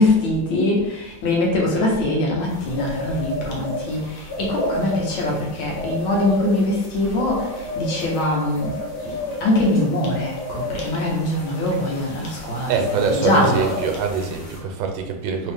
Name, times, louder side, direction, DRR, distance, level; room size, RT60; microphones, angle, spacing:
voice 1, 0.0-4.0 4.4-7.5 7.8-8.7 9.4-12.8 13.0-13.7, left 1 dB, 85° left, -2 dB, 1.9 m, -22 dB
sound 1, 2.5-14.6, left 2 dB, 55° left, 1.7 m, -32 dB
voice 2, 12.7-15.5, right 6 dB, 75° right, 4 dB, 1.4 m, -24 dB
3.8 x 2.8 x 3.5 m, 1.0 s
omnidirectional pair, 2.2 m